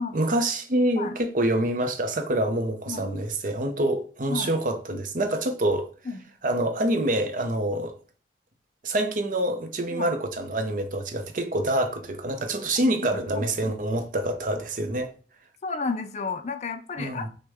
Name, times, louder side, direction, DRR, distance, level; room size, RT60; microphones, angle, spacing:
voice 1, 0.1-5.9 6.4-7.9 8.8-15.1 17.0-17.3, right 1 dB, 45° right, 0.6 m, -26 dB
voice 2, 2.9-3.2 4.3-4.6 6.1-6.2 9.9-10.1 13.4-13.5 15.6-17.3, left 4 dB, 40° left, 0.4 m, -32 dB
6.2 x 2.2 x 3.5 m
head